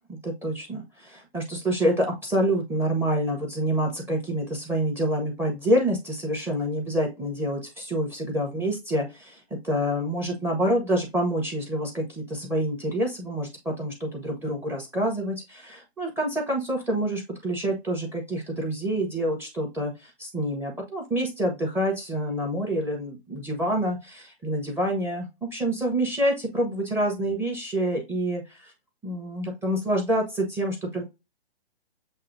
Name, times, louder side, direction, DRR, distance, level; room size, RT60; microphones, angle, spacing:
voice 1, 0.1-28.7 29.0-31.0, right 1 dB, 5° right, 0 dB, 1.0 m, -27 dB
7.5 x 2.7 x 2.6 m, 0.24 s
hypercardioid pair, 130°, 32 cm